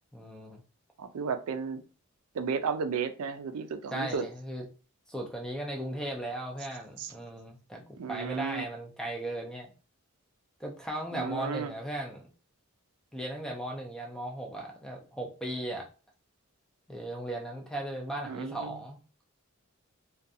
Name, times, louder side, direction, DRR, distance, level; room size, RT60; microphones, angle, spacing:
voice 1, 0.1-0.6 3.9-4.6 5.1-9.7 10.6-12.2 13.1-15.9 16.9-19.0, right 1 dB, 5° left, 1 dB, 0.4 m, -37 dB
voice 2, 1.0-1.8 2.3-4.2 7.0-7.1 8.0-8.6 11.1-11.7 18.2-18.8, right 5 dB, 80° right, 9 dB, 0.4 m, -33 dB
2.5 x 2.2 x 2.6 m, 0.36 s
head